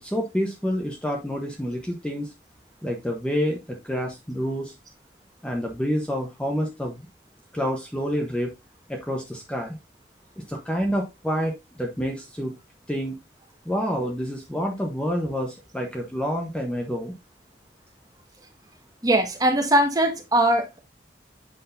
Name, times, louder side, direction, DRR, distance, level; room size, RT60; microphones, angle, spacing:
voice 1, 0.0-2.3 2.8-4.7 5.4-7.1 7.5-8.5 8.9-9.8 10.5-12.5 12.9-13.2 13.7-17.1, equal, 5° left, 1.0 m, -28 dB
voice 2, 19.0-20.8, right 1 dB, 20° right, 1.7 m, -21 dB
7.9 x 6.3 x 2.7 m
head